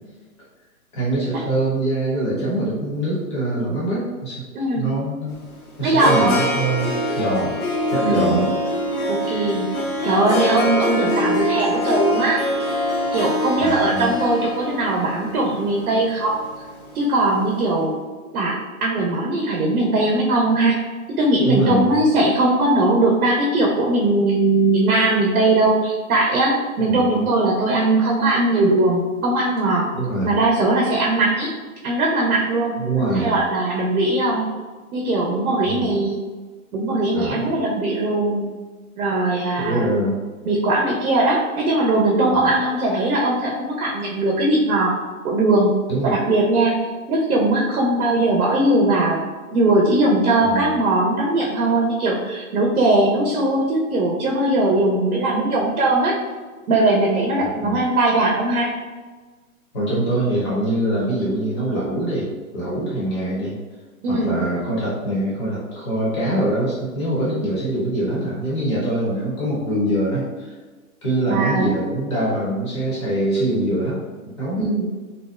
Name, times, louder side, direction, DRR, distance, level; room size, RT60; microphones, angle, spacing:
voice 1, 0.9-4.4 4.7-5.4 5.8-7.6 7.9-8.5 13.6-14.1 21.4-21.9 26.8-27.2 29.9-30.4 32.8-33.4 35.6-35.9 37.1-37.5 39.6-40.2 42.3-42.5 45.9-46.2 50.4-50.8 57.4-57.8 59.7-62.3 62.5-63.6 64.1-70.5 71.0-74.0 74.4-74.6, right 1 dB, 20° left, -7 dB, 0.6 m, -23 dB
voice 2, 4.5-4.9 5.8-6.4 8.0-8.5 9.1-9.7 10.0-12.4 13.1-16.4 16.9-17.9 18.3-18.6 18.8-20.7 21.2-29.9 30.2-31.5 31.8-32.7 33.1-34.4 34.9-36.2 36.7-38.5 39.0-39.9 40.5-44.9 45.2-45.7 46.0-46.8 47.1-49.2 49.5-56.1 56.7-58.7 64.0-64.3 71.3-71.7 74.6-74.9, right 2 dB, 80° right, -1 dB, 0.6 m, -19 dB
Harp, 5.3-17.5, left 1 dB, 80° left, 0.8 m, -24 dB
2.6 x 2.1 x 2.3 m, 1.3 s
hypercardioid pair, 155°, 43 cm